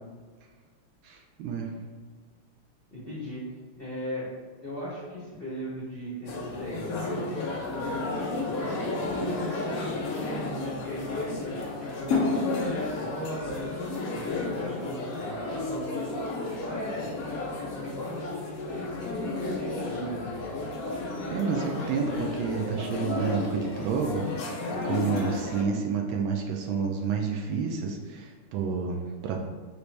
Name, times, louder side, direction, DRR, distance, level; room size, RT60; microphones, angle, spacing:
voice 1, 1.0-1.7 21.3-29.4, right 5 dB, 75° right, 1 dB, 1.3 m, -30 dB
voice 2, 2.9-3.4 3.8-4.3 4.6-7.2 7.7-9.0 9.3-13.6 14.1-15.9 16.6-20.3, equal, 55° left, -8 dB, 0.6 m, -38 dB
sound 1, 6.3-25.6, left 3 dB, 90° left, 0.7 m, -32 dB
5.0 x 3.1 x 3.2 m, 1.5 s
omnidirectional pair, 2.4 m